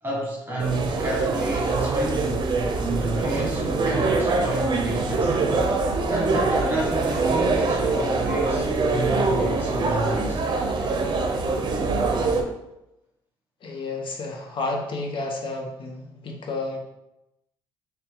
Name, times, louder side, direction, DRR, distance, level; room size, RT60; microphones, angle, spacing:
voice 1, 0.0-2.3 2.8-5.3 6.1-10.4, right 2 dB, 20° right, -5 dB, 1.5 m, -30 dB
sound 1, 0.6-12.4, right 3 dB, 45° right, 0.7 m, -24 dB
voice 2, 13.6-16.8, left 2 dB, 55° left, 1 dB, 0.9 m, -31 dB
4.0 x 2.3 x 3.8 m, 0.89 s
supercardioid pair, 70°, 10 cm